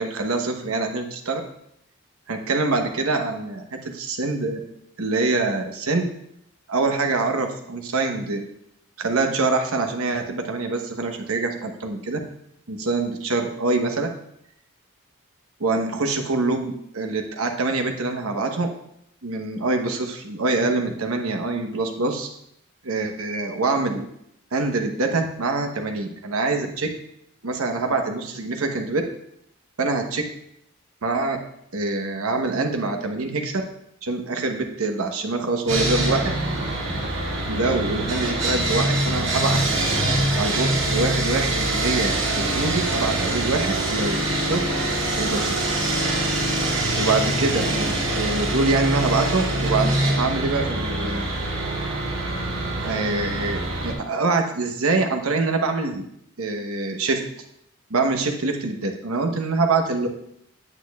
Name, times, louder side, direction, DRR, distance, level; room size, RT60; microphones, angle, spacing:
voice 1, 0.0-1.4 2.3-4.6 5.0-6.1 6.7-8.5 9.0-12.2 12.7-14.1 15.6-18.7 19.2-22.3 22.8-24.1 24.5-26.9 27.4-29.0 29.8-30.2 31.0-31.4 31.7-33.5 34.0-36.3 37.5-39.6 40.4-44.6 45.2-45.6 46.9-51.2 52.3-52.4 52.8-56.0 56.4-57.2 57.9-60.1, right 3 dB, 85° right, 4 dB, 1.0 m, -25 dB
Sawing, 35.7-53.9, right 1 dB, 60° right, 1.9 m, -24 dB
8.8 x 8.3 x 2.4 m, 0.74 s
head